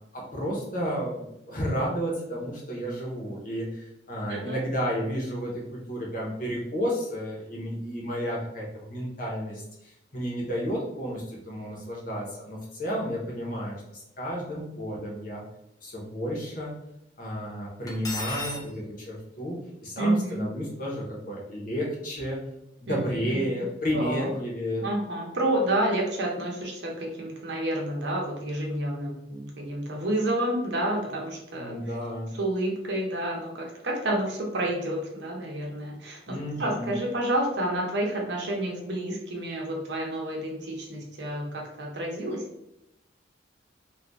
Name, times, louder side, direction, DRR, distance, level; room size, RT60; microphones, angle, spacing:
voice 1, 0.1-15.4 15.8-16.7 17.2-22.4 22.8-24.9 31.5-32.3 36.3-37.0, equal, 45° left, -3 dB, 1.0 m, -32 dB
Cutlery silverware, 17.9-18.6, left 2 dB, 20° left, 0.7 m, -34 dB
voice 2, 20.0-20.4 22.9-23.5 23.9-24.3 24.8-31.7 32.3-42.4, right 1 dB, 70° right, -1 dB, 0.8 m, -29 dB
2.7 x 2.4 x 3.4 m, 0.82 s
head